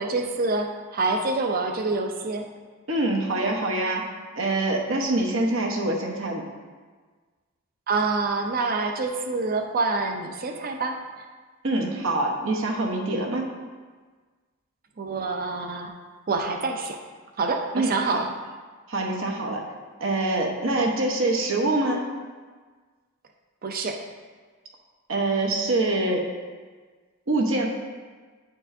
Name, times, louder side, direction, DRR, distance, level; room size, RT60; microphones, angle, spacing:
voice 1, 0.0-2.5 7.9-11.0 15.0-15.9 16.3-17.0 17.4-18.3 20.8-20.9 23.6-24.0, right 3 dB, 45° right, 4 dB, 0.5 m, -26 dB
voice 2, 2.9-6.4 11.6-13.5 17.7-18.2 18.9-19.6 20.0-22.1 25.1-26.3 27.3-27.7, right 2 dB, 65° right, 0 dB, 1.0 m, -25 dB
9.8 x 4.5 x 2.7 m, 1.4 s
head